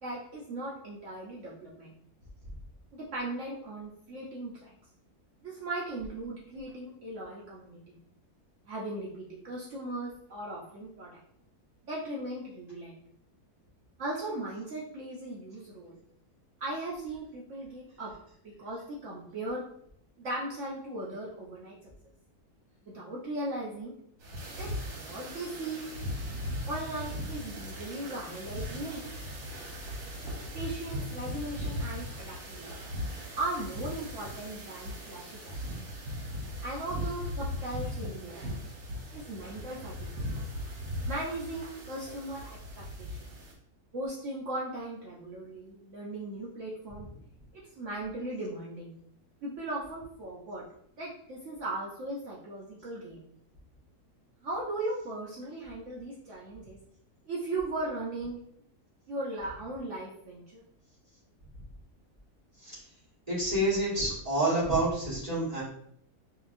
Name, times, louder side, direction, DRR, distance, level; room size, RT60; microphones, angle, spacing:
voice 1, 0.0-1.9 2.9-4.7 5.4-8.0 8.7-11.2 11.9-13.0 14.0-16.0 16.6-18.1 18.4-19.6 20.2-21.7 22.9-23.9 24.6-25.8 26.6-29.0 30.5-32.9 33.4-35.5 35.8-35.9 36.6-38.4 39.1-40.2 41.1-42.5 42.8-43.4 43.9-47.1 47.8-49.0 49.4-50.6 51.0-53.2 54.4-56.8 57.2-58.4 59.1-60.6, right 2 dB, 60° right, -4 dB, 0.9 m, -38 dB
sound 1, 24.2-43.5, equal, 75° right, 1.4 m, -38 dB
voice 2, 63.3-65.6, right 1 dB, 25° right, -8 dB, 1.5 m, -28 dB
4.7 x 2.8 x 2.5 m, 0.69 s
omnidirectional pair, 1.7 m